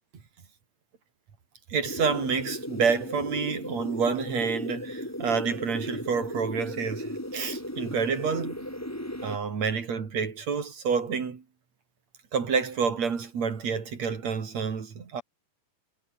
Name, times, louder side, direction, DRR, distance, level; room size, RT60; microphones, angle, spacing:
voice 1, 1.7-8.7 9.2-11.4 12.3-15.2, right 6 dB, 55° right, 4.2 m, -28 dB
sound 1, 1.8-9.4, equal, 5° left, 5.2 m, -36 dB
omnidirectional pair, 3.8 m